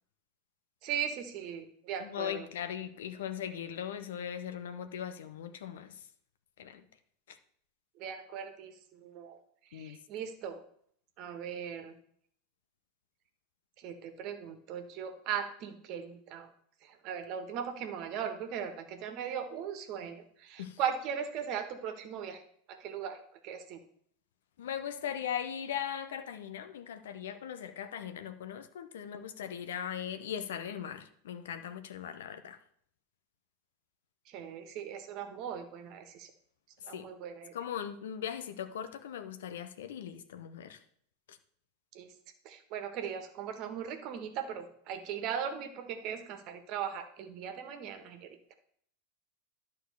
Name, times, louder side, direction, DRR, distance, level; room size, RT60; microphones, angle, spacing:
voice 1, 0.8-2.5 8.0-9.4 9.7-10.6 11.2-12.0 13.8-16.5 16.8-22.4 22.7-23.8 34.3-36.3 36.9-37.5 41.9-42.1 42.4-48.5, right 8 dB, 50° right, 7 dB, 1.5 m, -39 dB
voice 2, 2.0-6.0 6.6-6.8 7.3-7.4 9.7-10.0 20.6-20.8 24.6-32.6 36.9-37.1 37.5-40.8 41.3-41.4, left 9 dB, 70° left, 10 dB, 0.8 m, -39 dB
11.0 x 4.3 x 6.7 m, 0.64 s
hypercardioid pair, 90°, 0 cm